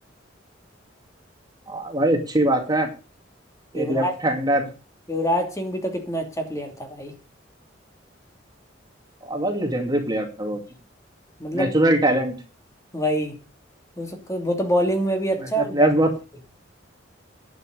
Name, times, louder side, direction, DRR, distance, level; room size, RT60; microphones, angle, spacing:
voice 1, 1.7-2.9 3.7-4.7 9.3-10.6 11.5-12.3 15.6-16.1, right 1 dB, 20° right, 2.3 m, -22 dB
voice 2, 3.7-4.1 5.1-7.1 11.4-11.7 12.9-13.4 14.0-15.8, equal, 15° left, 2.8 m, -25 dB
11.0 x 7.6 x 7.9 m
head